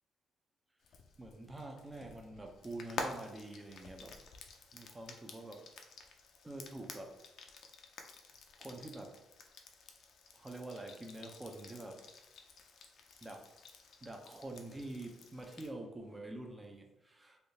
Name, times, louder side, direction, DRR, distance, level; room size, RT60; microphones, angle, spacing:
Frying (food), 0.8-15.7, left 4 dB, 70° left, 0.4 m, -50 dB
voice 1, 1.2-4.2 4.7-5.7 6.1-6.2 6.4-7.1 8.6-9.2 10.3-12.0 13.2-13.5 14.0-17.4, right 2 dB, 15° right, 2 dB, 0.6 m, -46 dB
3.4 x 2.6 x 2.8 m, 0.94 s
cardioid pair, 90°, 0 cm